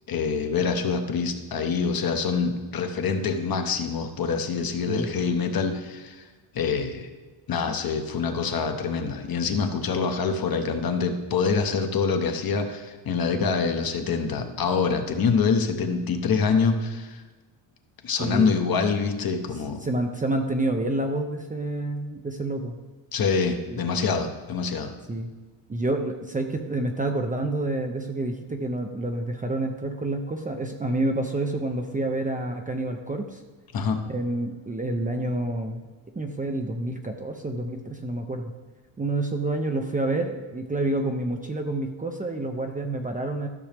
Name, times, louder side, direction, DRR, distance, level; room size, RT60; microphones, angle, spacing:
voice 1, 0.1-6.2 6.5-7.1 7.5-17.2 18.0-19.8 23.1-24.9 33.7-34.0, left 5 dB, 45° left, 6 dB, 1.0 m, -25 dB
voice 2, 4.9-5.3 18.2-18.5 19.8-22.8 23.7-23.8 25.1-25.3 25.7-33.4 34.1-35.9 36.2-38.5 39.0-43.5, right 2 dB, 15° right, 4 dB, 0.6 m, -28 dB
13.5 x 6.2 x 3.4 m, 1.3 s
cardioid pair, 125°, 50 cm